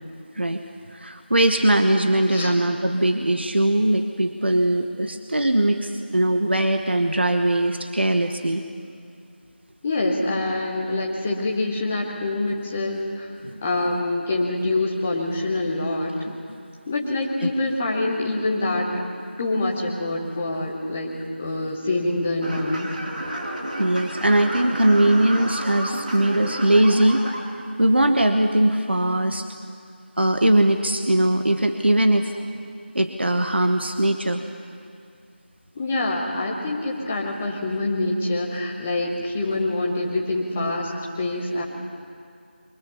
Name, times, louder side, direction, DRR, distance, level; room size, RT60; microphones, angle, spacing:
voice 1, 0.9-8.6 13.4-13.6 23.8-27.3 27.8-29.4 30.2-32.3 32.9-34.4, right 1 dB, 70° right, 6 dB, 1.2 m, -20 dB
voice 2, 9.8-13.3 13.6-16.1 16.9-19.1 19.4-22.9 35.7-40.9 41.2-41.6, left 2 dB, 5° left, -2 dB, 0.6 m, -25 dB
sound 1, 22.4-27.4, right 1 dB, 45° right, 2.7 m, -31 dB
23.5 x 18.5 x 7.3 m, 2.3 s
figure-of-eight pair, 175°, 6 cm